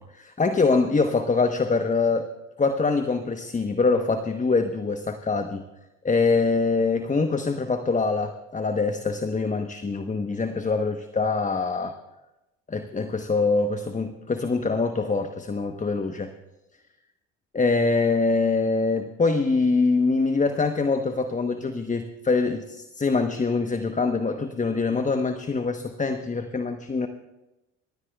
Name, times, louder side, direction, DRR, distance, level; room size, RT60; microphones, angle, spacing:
voice 1, 0.2-2.3 2.6-5.6 6.0-11.9 12.7-16.3 17.5-27.1, left 4 dB, 20° left, 7 dB, 1.1 m, -24 dB
27.5 x 14.5 x 2.3 m, 0.97 s
hypercardioid pair, 60°, 36 cm